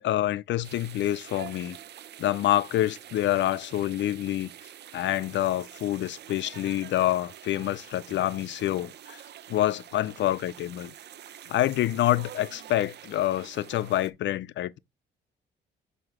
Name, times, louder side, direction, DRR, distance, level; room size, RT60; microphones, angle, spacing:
voice 1, 0.0-1.8 2.2-4.5 4.9-9.2 9.5-10.9 11.5-14.8, left 13 dB, 65° left, 0.5 m, -27 dB
sound 1, 0.6-14.1, right 11 dB, 60° right, 0.6 m, -47 dB
7.8 x 2.8 x 5.8 m
cardioid pair, 90°, 20 cm